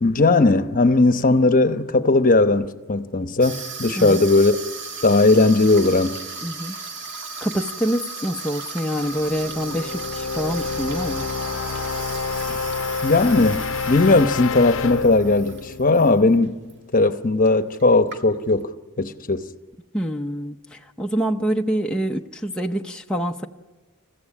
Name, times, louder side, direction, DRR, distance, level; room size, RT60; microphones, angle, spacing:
voice 1, 0.0-4.6 5.0-6.2 12.5-12.6 13.0-16.5 16.9-19.5, left 3 dB, 40° left, 0.9 m, -18 dB
Water tap faucet / Sink (filling or washing), 3.4-16.1 16.4-16.7 17.5-17.6 17.7-18.6, right 4 dB, 55° right, 1.8 m, -36 dB
voice 2, 6.4-6.7 7.4-11.3 19.9-23.5, equal, 5° left, 0.7 m, -26 dB
sound 1, 9.1-16.8, left 4 dB, 65° left, 0.7 m, -29 dB
28.5 x 15.5 x 10.0 m
head